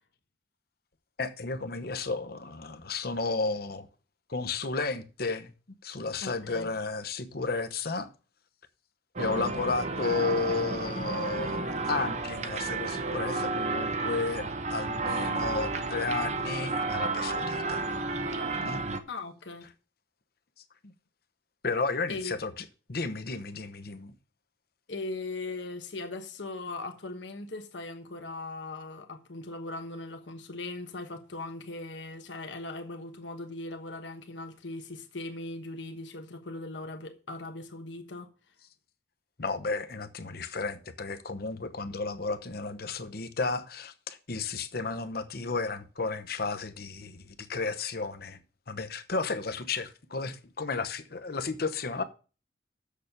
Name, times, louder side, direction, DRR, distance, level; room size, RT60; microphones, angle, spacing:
voice 1, 1.2-3.9 4.3-5.5 5.8-8.1 9.2-17.9 18.6-18.8 20.8-20.9 21.6-22.6 22.9-24.1 39.4-48.4 48.7-52.0, left 4 dB, 55° left, 0.9 m, -33 dB
voice 2, 6.2-6.7 19.1-19.7 22.1-22.3 24.9-38.3, left 2 dB, 90° left, 1.2 m, -39 dB
sound 1, 9.2-19.0, right 3 dB, 40° right, 0.9 m, -32 dB
7.2 x 6.8 x 6.5 m
head